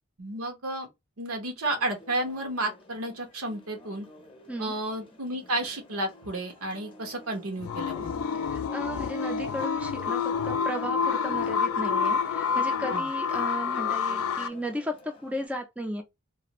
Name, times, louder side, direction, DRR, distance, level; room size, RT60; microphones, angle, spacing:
voice 1, 0.2-0.9 1.2-4.1 4.6-8.1 12.9-13.1, right 1 dB, 80° right, 1.0 m, -32 dB
sound 1, 1.6-15.5, left 2 dB, 25° left, 0.7 m, -49 dB
sound 2, 7.6-14.5, left 6 dB, 75° left, 0.4 m, -28 dB
voice 2, 8.5-16.0, equal, 5° right, 0.4 m, -35 dB
2.5 x 2.5 x 2.9 m
head